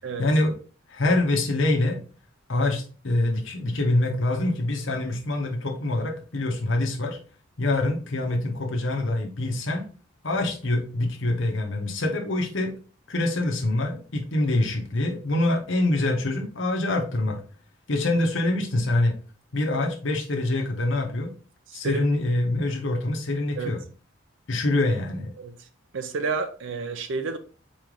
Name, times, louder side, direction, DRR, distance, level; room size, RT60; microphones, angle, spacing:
voice 1, 0.2-0.5 0.9-2.0 2.5-7.2 7.6-9.8 10.2-12.7 13.1-17.4 17.9-19.1 19.5-21.3 21.7-23.8 24.5-25.3, left 2 dB, 65° left, 1.0 m, -25 dB
voice 2, 21.7-22.0 23.6-23.7 25.4-25.6 25.9-27.4, right 4 dB, 65° right, 0.5 m, -30 dB
4.4 x 3.2 x 3.7 m
head